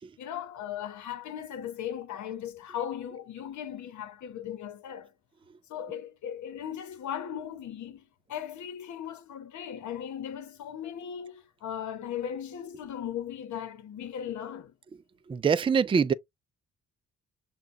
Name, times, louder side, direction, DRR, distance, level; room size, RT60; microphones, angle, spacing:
voice 1, 0.2-5.1 5.7-14.7, left 9 dB, 70° left, 1.1 m, -37 dB
voice 2, 15.3-16.1, right 6 dB, 20° right, 0.4 m, -23 dB
6.6 x 2.4 x 2.6 m
cardioid pair, 90°, 30 cm